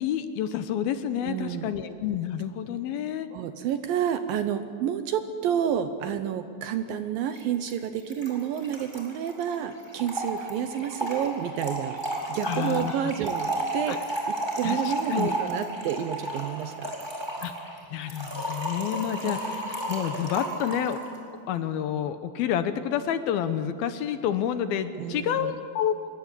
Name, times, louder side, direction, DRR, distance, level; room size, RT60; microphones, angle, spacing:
voice 1, 0.0-3.3 12.4-13.0 13.9-14.0 14.6-15.4 17.4-17.5 17.9-19.6 19.9-21.0 21.5-25.9, left 9 dB, 75° left, 10 dB, 2.5 m, -29 dB
voice 2, 1.2-1.7 3.3-12.0 12.3-14.0 14.3-16.9 19.2-19.4 25.0-25.6, right 9 dB, 75° right, 9 dB, 2.3 m, -30 dB
Trickle dribble / Fill (with liquid), 7.4-7.5 7.7-7.8 8.0-21.1, right 1 dB, 5° right, 3.9 m, -32 dB
26.5 x 22.0 x 8.3 m, 2.3 s
omnidirectional pair, 4.8 m